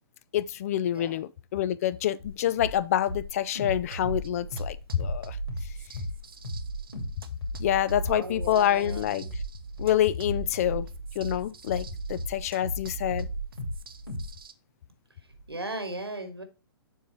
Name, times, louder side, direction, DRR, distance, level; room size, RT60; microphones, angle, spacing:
voice 1, 0.3-5.4 7.6-9.2 9.8-10.9 11.2-13.3, left 11 dB, 40° left, 0.4 m, -27 dB
voice 2, 0.9-1.2 8.1-9.3 15.5-16.4, right 2 dB, 85° right, 1.6 m, -37 dB
sound 1, 2.2-2.3 2.6-2.8 3.1-5.2 5.5-5.7 6.0-6.2 6.4-6.7 6.9-7.2 7.4-12.9 13.1-13.8 14.1-14.3, left 1 dB, 80° left, 2.6 m, -35 dB
sound 2, 3.9-14.5, right 4 dB, 70° right, 0.8 m, -39 dB
7.0 x 4.1 x 4.4 m
figure-of-eight pair, 120°, 13 cm